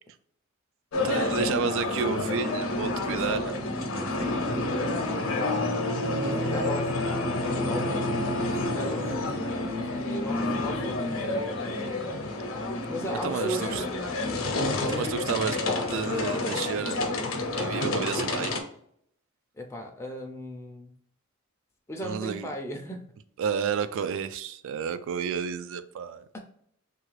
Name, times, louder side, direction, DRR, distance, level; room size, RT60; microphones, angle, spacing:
sound 1, 0.9-18.6, left 2 dB, 65° left, 0.6 m, -29 dB
voice 1, 1.0-3.5 13.2-13.8 14.9-17.0 17.3-18.5 22.0-22.5 23.4-26.2, right 6 dB, 65° right, 0.3 m, -31 dB
voice 2, 4.0-5.2 6.0-11.2 12.9-14.1 14.9-15.2 19.6-20.9 21.9-23.0 26.3-26.5, equal, 10° left, 0.3 m, -37 dB
3.1 x 2.4 x 3.1 m
head